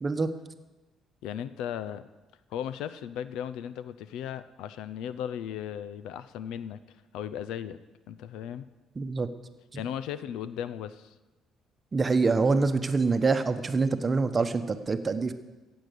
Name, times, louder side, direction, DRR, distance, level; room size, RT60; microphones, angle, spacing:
voice 1, 1.2-2.0 2.5-7.8 8.1-8.7 9.7-11.1, left 9 dB, 80° left, 14 dB, 0.6 m, -36 dB
voice 2, 9.0-9.3 9.7-9.8 11.9-15.3, right 4 dB, 30° right, 10 dB, 1.0 m, -25 dB
15.5 x 8.1 x 6.8 m, 1.2 s
cardioid pair, 90°, 0 cm